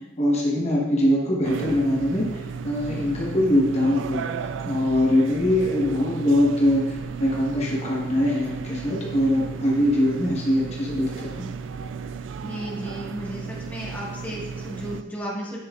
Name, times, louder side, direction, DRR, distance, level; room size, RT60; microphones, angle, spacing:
voice 1, 0.2-2.2 2.6-4.2 4.6-11.5, left 1 dB, 35° left, -4 dB, 1.3 m, -22 dB
sound 1, 1.4-15.0, right 6 dB, 85° right, 0.3 m, -34 dB
voice 2, 12.4-15.6, equal, 10° left, -6 dB, 1.7 m, -34 dB
9.4 x 5.6 x 2.5 m, 1.1 s
head